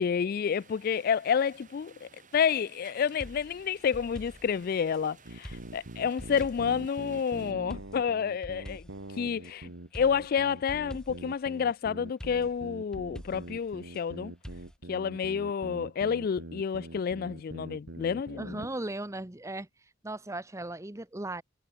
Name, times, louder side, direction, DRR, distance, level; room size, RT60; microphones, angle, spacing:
voice 1, 0.0-8.8 9.2-14.3 14.9-18.6, left 7 dB, 50° left, 0.3 m, -29 dB
sound 1, 0.6-7.5, right 5 dB, 40° right, 7.8 m, -56 dB
sound 2, 3.2-5.0 5.4-6.9 7.7-9.5 9.9-11.4 12.2-14.0 14.4-14.8, equal, 5° left, 1.2 m, -47 dB
sound 3, 5.2-18.8, right 2 dB, 85° right, 1.7 m, -44 dB
voice 2, 18.4-19.7 20.0-21.4, right 2 dB, 15° right, 0.9 m, -37 dB
head